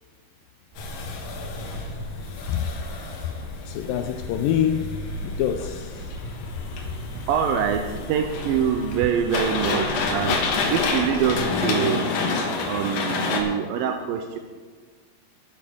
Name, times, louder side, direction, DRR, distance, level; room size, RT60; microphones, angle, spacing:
sound 1, 0.7-11.4, equal, 20° right, 3.5 m, -37 dB
sound 2, 0.8-13.4, left 4 dB, 65° left, 2.8 m, -29 dB
voice 1, 3.7-4.9 5.2-5.9, left 10 dB, 85° left, 8 dB, 2.0 m, -25 dB
voice 2, 6.8-10.4 10.7-12.1 12.7-14.4, right 8 dB, 85° right, 5 dB, 2.1 m, -25 dB
10.5 x 8.7 x 6.1 m, 1.5 s
omnidirectional pair, 4.6 m